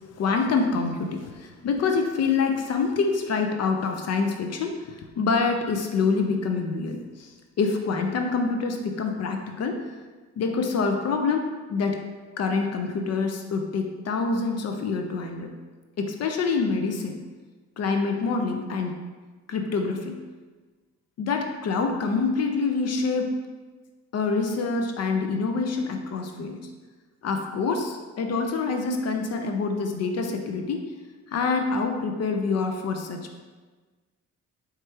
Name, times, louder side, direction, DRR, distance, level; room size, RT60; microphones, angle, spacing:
voice 1, 0.1-7.3 7.6-9.9 10.4-12.0 12.4-15.5 16.0-17.2 17.8-19.0 19.5-20.2 21.2-23.3 24.1-26.6 27.2-30.9 31.3-33.4, left 4 dB, 55° left, 4 dB, 0.5 m, -26 dB
4.4 x 3.2 x 3.3 m, 1.3 s
cardioid pair, 90°, 30 cm